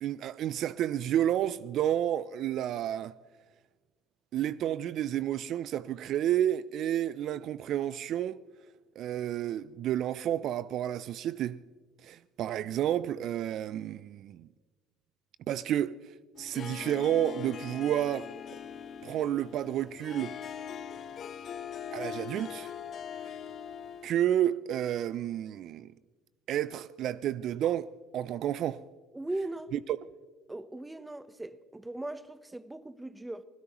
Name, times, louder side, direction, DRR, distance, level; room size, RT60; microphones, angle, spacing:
voice 1, 0.0-3.1 4.3-8.4 9.0-11.6 12.0-14.5 15.5-16.1 16.4-18.3 19.0-20.4 21.9-22.7 23.2-23.3 24.0-25.9 26.5-28.8 29.7-30.0, right 11 dB, 60° right, 0.3 m, -30 dB
Harp, 16.4-24.3, left 8 dB, 50° left, 0.8 m, -41 dB
voice 2, 29.1-29.7 30.5-33.4, right 2 dB, 10° right, 0.9 m, -39 dB
25.0 x 16.5 x 3.0 m
supercardioid pair, 75°, 0 cm